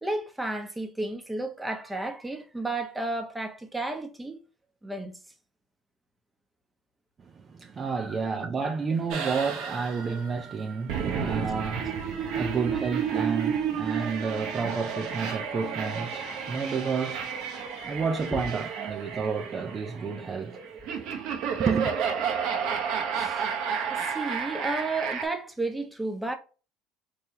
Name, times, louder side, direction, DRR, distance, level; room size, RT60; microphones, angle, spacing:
voice 1, 0.0-4.4 4.8-5.2 8.1-8.2 12.4-12.5 23.1-23.4 23.8-26.3, right 2 dB, 10° right, 0.9 m, -32 dB
voice 2, 7.2-17.4 17.8-20.6 21.6-21.9, right 5 dB, 30° right, 0.6 m, -31 dB
sound 1, 9.1-25.3, right 7 dB, 60° right, 0.8 m, -31 dB
3.6 x 3.3 x 2.8 m
hypercardioid pair, 85°, 0 cm